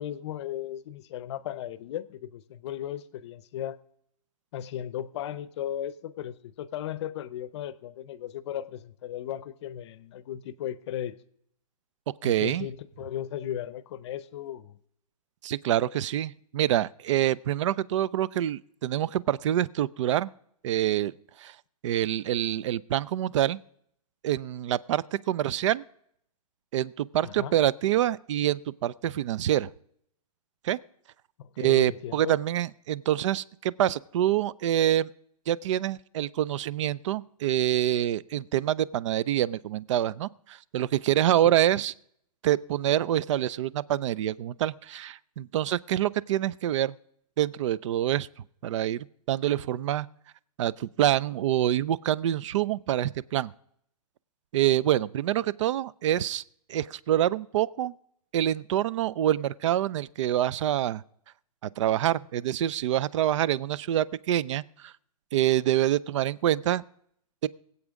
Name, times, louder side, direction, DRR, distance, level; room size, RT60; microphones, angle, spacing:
voice 1, 0.0-3.8 4.5-11.2 12.2-14.8 27.2-27.6 31.4-32.3, left 11 dB, 45° left, 0.7 m, -36 dB
voice 2, 12.2-12.7 15.4-20.3 20.6-21.1 21.4-21.5 21.8-23.6 24.2-25.8 26.7-29.7 30.6-30.8 31.6-35.1 35.5-41.9 42.4-46.9 47.4-48.3 48.6-50.1 50.6-53.5 54.5-56.4 56.7-57.9 58.3-61.0 61.8-64.9 65.3-66.8 67.4-67.5, right 12 dB, 50° right, 0.4 m, -26 dB
23.5 x 8.3 x 3.6 m
hypercardioid pair, 150°, 20 cm